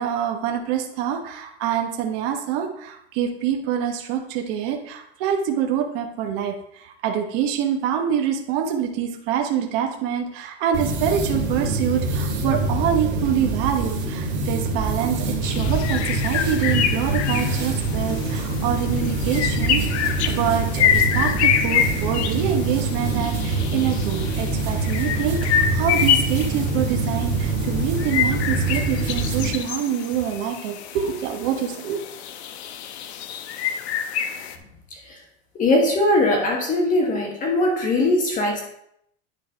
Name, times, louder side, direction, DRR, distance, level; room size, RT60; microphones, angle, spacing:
voice 1, 0.0-32.0, right 8 dB, 50° right, 3 dB, 1.2 m, -26 dB
sound 1, 10.7-29.5, right 3 dB, 35° right, 2.1 m, -25 dB
sound 2, 15.4-34.6, left 9 dB, 90° left, 0.9 m, -27 dB
voice 2, 35.6-38.6, left 2 dB, 25° left, 1 dB, 1.3 m, -20 dB
9.7 x 4.1 x 5.1 m, 0.73 s
supercardioid pair, 160°, 32 cm